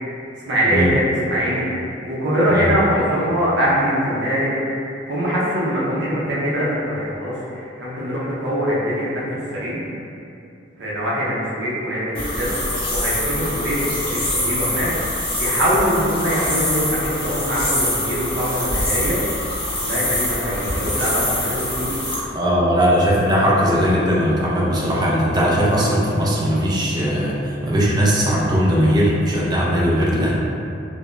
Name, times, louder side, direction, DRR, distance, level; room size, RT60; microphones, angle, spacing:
voice 1, 0.4-1.7 2.0-4.5 5.1-9.2 9.5-9.8 10.8-14.9 15.4-19.2 19.8-22.0, equal, 65° right, -7 dB, 0.6 m, -22 dB
sound 1, 12.1-22.2, left 1 dB, 25° left, 0.7 m, -24 dB
voice 2, 22.3-30.3, equal, 20° right, -5 dB, 0.4 m, -19 dB
3.1 x 2.0 x 2.4 m, 2.6 s
head